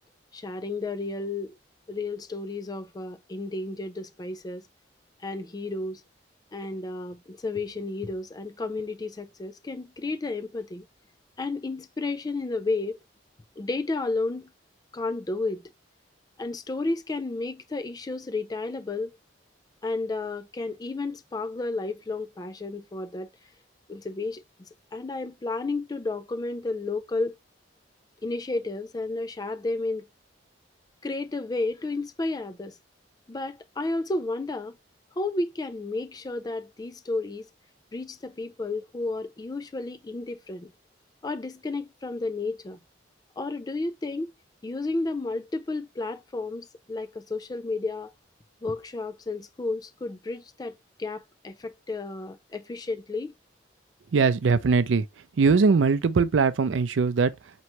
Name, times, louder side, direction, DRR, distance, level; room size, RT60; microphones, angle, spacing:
voice 1, 0.3-1.5 1.9-4.7 5.2-6.0 6.5-10.9 11.4-13.0 13.6-14.5 14.9-15.7 16.4-19.2 19.8-23.3 23.9-24.4 24.9-27.3 28.2-30.1 31.0-32.8 33.3-34.8 35.2-37.5 37.9-40.7 41.2-42.8 43.4-44.3 44.6-48.1 48.6-53.3, left 3 dB, 20° left, 0.3 m, -32 dB
voice 2, 54.1-55.0 55.4-57.3, right 4 dB, 90° right, 0.5 m, -21 dB
4.4 x 3.0 x 2.9 m
head